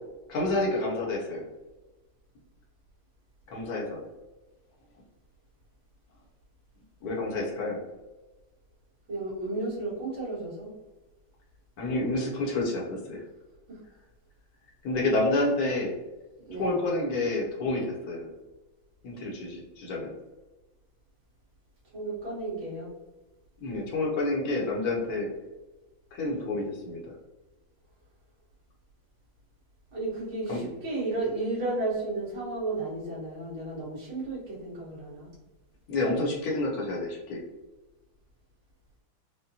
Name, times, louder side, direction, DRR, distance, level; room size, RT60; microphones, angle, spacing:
voice 1, 0.3-1.4 3.5-4.0 7.0-7.8 11.8-13.2 14.8-15.9 16.5-18.3 19.0-20.1 23.6-25.3 26.1-27.1 30.5-30.7 35.9-37.4, left 2 dB, 60° left, -2 dB, 1.1 m, -29 dB
voice 2, 9.1-10.7 13.7-13.8 15.3-15.5 16.4-17.0 21.9-22.9 29.9-35.3, right 2 dB, 65° right, -9 dB, 2.2 m, -33 dB
5.0 x 2.1 x 2.7 m, 1.1 s
omnidirectional pair, 2.2 m